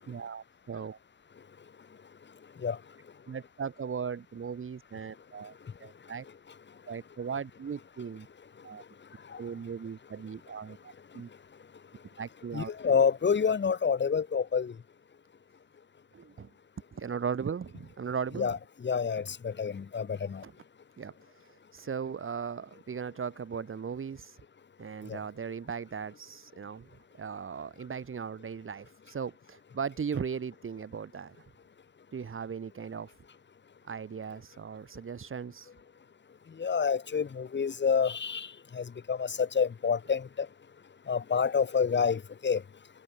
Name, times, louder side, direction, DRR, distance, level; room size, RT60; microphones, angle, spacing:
voice 1, 0.1-1.0 3.3-5.5 5.8-6.2 6.9-8.3 8.6-8.8 9.4-11.3 12.2-12.7 16.1-16.5 16.9-18.5 20.4-20.5 21.0-24.4 24.8-31.5 32.1-33.1 33.8-35.7, right 6 dB, 45° right, 4.6 m, -38 dB
voice 2, 12.5-14.7 18.4-18.6 18.8-20.4 25.1-25.2 36.6-40.5 41.1-42.6, left 6 dB, 35° left, 2.2 m, -28 dB
cardioid pair, 90°, 30 cm